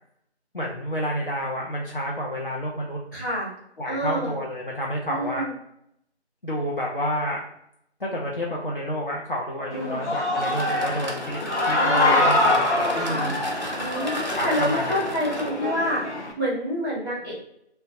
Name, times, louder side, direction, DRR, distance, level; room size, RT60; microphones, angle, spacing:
voice 1, 0.5-3.0 3.8-5.4 6.4-7.4 8.0-13.4 14.3-15.0, equal, 50° left, -3 dB, 0.5 m, -29 dB
voice 2, 3.1-3.5 3.9-4.3 5.1-5.5 9.7-10.0 11.7-12.2 13.0-13.3 13.8-16.0 16.4-17.4, equal, 15° left, -12 dB, 0.8 m, -28 dB
Human voice / Cheering, 9.7-16.3, left 2 dB, 85° left, 0.7 m, -25 dB
sound 1, 10.4-15.5, equal, 45° right, 0.4 m, -34 dB
2.4 x 2.1 x 2.7 m, 0.74 s
figure-of-eight pair, 165°, 34 cm